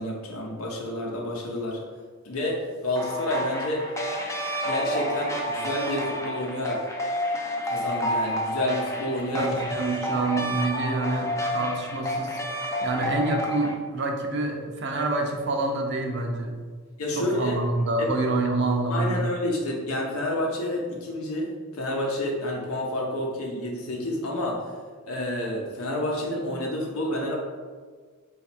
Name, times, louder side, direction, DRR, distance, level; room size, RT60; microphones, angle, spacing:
voice 1, 0.0-1.8 2.2-3.9 4.6-6.9 7.6-9.5 17.0-17.6 18.0-18.1 18.9-24.7 25.1-27.4, left 1 dB, 80° left, -2 dB, 0.7 m, -29 dB
sound 1, 3.0-13.7, equal, 15° left, 0.3 m, -30 dB
voice 2, 9.3-12.4 12.8-16.6 17.2-19.2, right 2 dB, 50° right, 2 dB, 0.6 m, -27 dB
4.0 x 2.4 x 4.3 m, 1.5 s
head